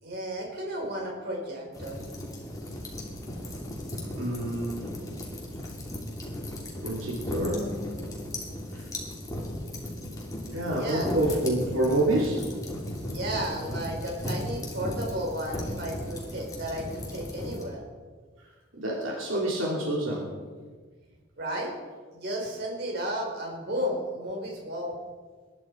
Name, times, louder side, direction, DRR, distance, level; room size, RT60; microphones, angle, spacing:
voice 1, 0.0-2.0 10.7-11.2 13.0-17.8 21.4-21.7 22.1-25.0, equal, 55° right, 0 dB, 4.2 m, -33 dB
sound 1, 1.7-17.6, left 1 dB, 20° left, 3.0 m, -36 dB
voice 2, 4.1-4.9 6.8-7.8 8.7-8.8 10.5-12.4 18.7-20.3, right 1 dB, 85° right, -2 dB, 3.1 m, -28 dB
21.0 x 12.0 x 4.6 m, 1.5 s
head